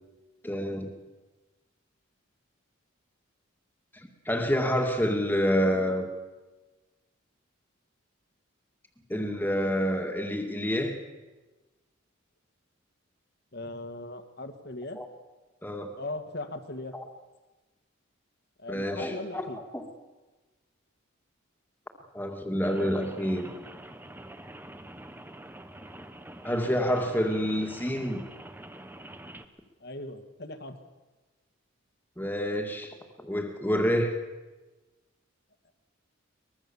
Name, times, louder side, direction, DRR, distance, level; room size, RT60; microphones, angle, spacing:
voice 1, 0.4-0.9 3.9-6.1 9.1-11.0 15.0-15.1 15.6-15.9 16.9-17.0 18.7-19.9 22.1-23.5 26.4-28.2 32.2-34.2, equal, 10° left, 4 dB, 2.1 m, -28 dB
voice 2, 13.5-15.0 16.0-16.9 18.6-19.6 29.8-30.8 35.7-35.8, left 2 dB, 50° left, 8 dB, 1.9 m, -39 dB
Rain, 22.6-29.5, right 1 dB, 10° right, 1.0 m, -46 dB
23.5 x 21.0 x 7.2 m, 1.2 s
head